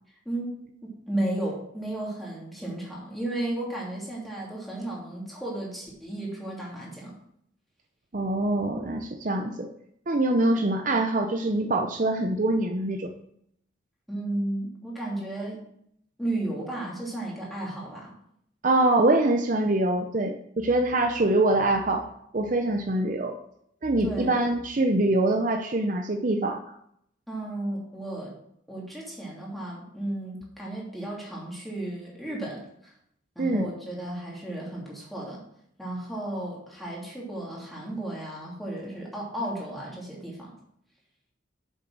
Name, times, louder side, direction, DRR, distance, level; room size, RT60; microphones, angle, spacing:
voice 1, 0.8-7.2 14.1-15.7 16.2-18.1 24.0-24.4 27.3-28.3 28.7-32.9 33.3-35.4 35.8-40.5, right 1 dB, ahead, -5 dB, 2.9 m, -34 dB
voice 2, 8.1-9.7 10.1-13.1 18.6-22.1 22.3-23.3 23.8-26.6 33.4-33.7, right 2 dB, 40° right, 4 dB, 0.6 m, -24 dB
7.8 x 6.5 x 6.1 m, 0.72 s
head